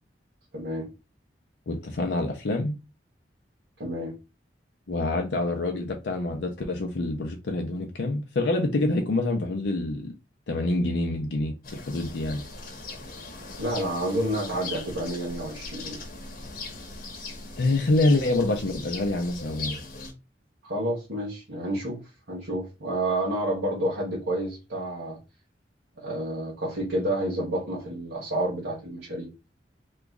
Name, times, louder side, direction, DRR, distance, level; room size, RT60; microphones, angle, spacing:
voice 1, 0.5-0.9 3.8-4.1 13.6-16.0 20.6-22.0 22.3-25.2 26.0-29.3, right 1 dB, 80° right, 1.3 m, -29 dB
voice 2, 1.7-2.8 4.9-10.1 10.5-12.4 17.6-19.8, left 2 dB, 75° left, 0.5 m, -26 dB
sound 1, 11.6-20.1, left 3 dB, 55° left, 1.0 m, -40 dB
3.0 x 2.4 x 3.6 m
head